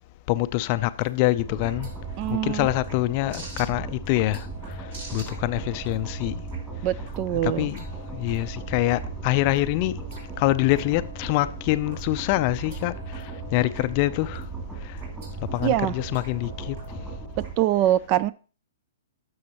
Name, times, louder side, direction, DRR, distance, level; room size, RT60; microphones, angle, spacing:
voice 1, 0.3-1.9 2.3-6.5 7.4-7.9 8.1-10.1 10.4-14.5 14.8-15.0 15.4-17.2, left 17 dB, 40° left, 0.4 m, -25 dB
sound 1, 0.7-17.5, right 2 dB, 65° right, 3.6 m, -48 dB
sound 2, 1.4-17.5, right 3 dB, 15° right, 2.6 m, -37 dB
voice 2, 2.2-2.7 6.8-7.7 15.6-15.9 17.6-18.3, right 13 dB, 40° right, 0.3 m, -23 dB
sound 3, 2.8-16.6, left 7 dB, 90° right, 5.2 m, -53 dB
11.0 x 6.3 x 2.9 m
hypercardioid pair, 130°, 0 cm